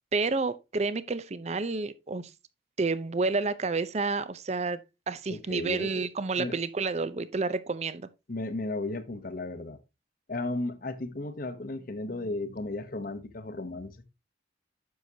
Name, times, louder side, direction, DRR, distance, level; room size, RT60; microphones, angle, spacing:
voice 1, 0.1-2.3 2.8-4.8 5.1-8.1, right 3 dB, 35° right, 0.5 m, -30 dB
voice 2, 5.3-6.0 6.4-6.5 8.3-9.8 10.3-14.0, left 2 dB, 50° left, 0.9 m, -34 dB
9.5 x 6.4 x 2.7 m
head